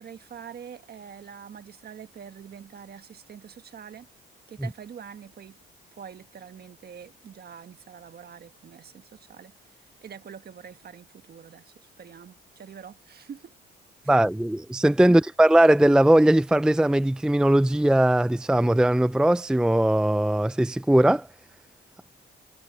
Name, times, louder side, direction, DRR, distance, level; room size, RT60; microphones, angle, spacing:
voice 1, 0.0-4.1 4.5-5.6 5.9-9.5 10.0-13.5, right 7 dB, 50° right, 1.5 m, -45 dB
voice 2, 14.1-21.3, right 1 dB, 5° right, 0.5 m, -19 dB
cardioid pair, 95°, 21 cm